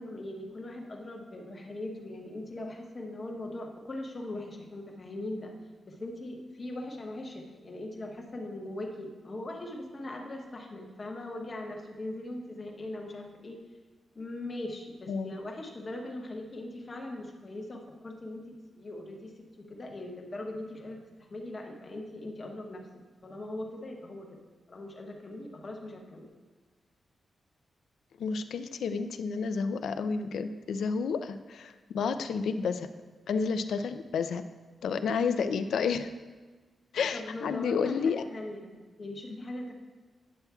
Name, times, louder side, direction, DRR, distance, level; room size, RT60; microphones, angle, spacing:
voice 1, 0.0-5.5 5.8-13.6 14.1-22.9 23.2-24.4 24.7-26.3 37.1-39.7, left 1 dB, 30° left, 1 dB, 0.8 m, -40 dB
voice 2, 28.2-32.9 33.3-34.5 34.8-36.1 36.9-38.2, left 5 dB, 90° left, 10 dB, 0.3 m, -30 dB
9.3 x 6.9 x 2.3 m, 1.4 s
wide cardioid pair, 180°, 0 cm